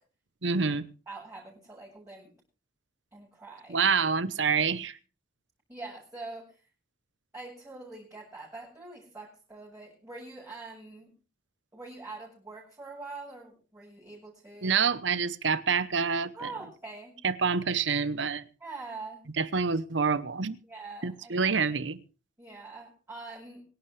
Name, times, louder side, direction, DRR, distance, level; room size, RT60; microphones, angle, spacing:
voice 1, 0.4-0.8 3.7-5.0 14.6-16.5 17.2-18.4 19.4-20.6 21.0-22.0, right 5 dB, 80° right, 1.0 m, -27 dB
voice 2, 1.1-2.3 3.1-3.8 5.7-6.6 7.3-11.1 11.7-14.7 16.3-17.2 18.6-19.2 20.7-21.5 22.4-23.6, right 3 dB, 15° right, 7.9 m, -44 dB
25.5 x 11.5 x 3.3 m
head